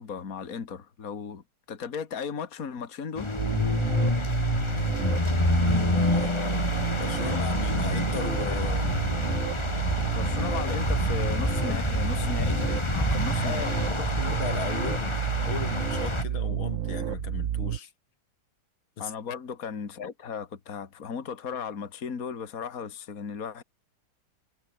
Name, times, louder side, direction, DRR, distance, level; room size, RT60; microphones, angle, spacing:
voice 1, 0.0-3.3 10.1-14.0 19.0-23.6, left 6 dB, 45° left, 2.4 m, -36 dB
sound 1, 3.1-16.2, left 2 dB, 15° left, 1.3 m, -28 dB
sound 2, 3.4-17.8, right 11 dB, 75° right, 0.7 m, -30 dB
voice 2, 5.5-9.0 11.7-11.8 13.4-17.9 19.0-19.1, left 7 dB, 80° left, 2.7 m, -36 dB
omnidirectional pair, 2.2 m